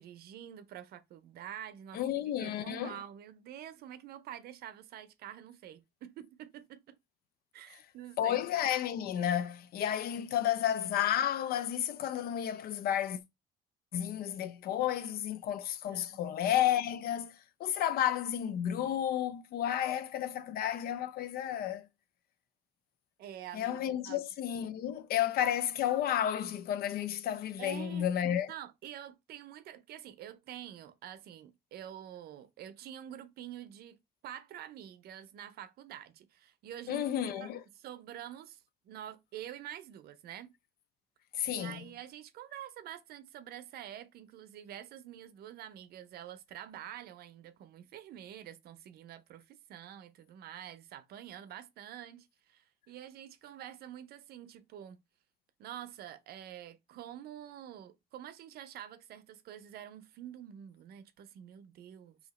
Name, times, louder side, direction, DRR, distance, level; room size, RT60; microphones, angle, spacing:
voice 1, 0.0-7.0 7.5-8.4 15.9-16.2 23.2-24.2 27.6-28.1 28.5-40.5 41.5-55.0 55.6-62.2, right 11 dB, 65° right, 0.6 m, -47 dB
voice 2, 1.9-3.0 8.2-13.2 13.9-21.9 23.5-28.5 36.9-37.6 41.3-41.8, left 10 dB, 65° left, 0.5 m, -32 dB
2.8 x 2.8 x 4.1 m
cardioid pair, 110°, 17 cm